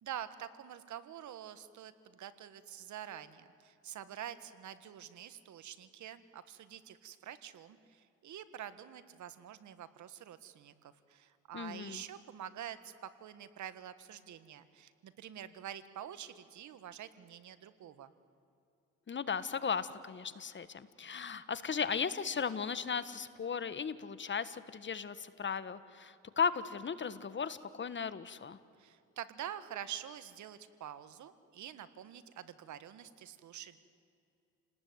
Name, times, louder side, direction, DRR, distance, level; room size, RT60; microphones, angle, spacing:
voice 1, 0.0-18.1 28.8-33.8, right 10 dB, 75° right, 13 dB, 1.6 m, -47 dB
voice 2, 11.5-12.0 19.1-28.6, left 6 dB, 40° left, 14 dB, 1.4 m, -36 dB
29.5 x 19.0 x 9.5 m, 2.6 s
cardioid pair, 90°, 30 cm